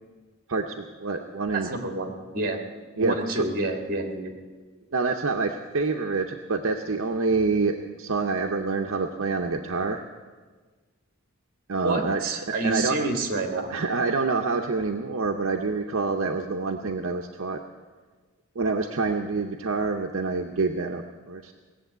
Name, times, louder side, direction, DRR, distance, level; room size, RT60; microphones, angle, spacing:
voice 1, 0.5-1.7 3.0-3.4 4.9-10.0 11.7-12.2 12.6-13.0 13.7-17.6 18.6-21.5, right 4 dB, 65° right, 3 dB, 0.7 m, -27 dB
voice 2, 1.5-2.6 3.0-4.3 11.8-13.7, right 2 dB, 40° right, 3 dB, 1.7 m, -28 dB
18.0 x 7.5 x 8.0 m, 1.4 s
head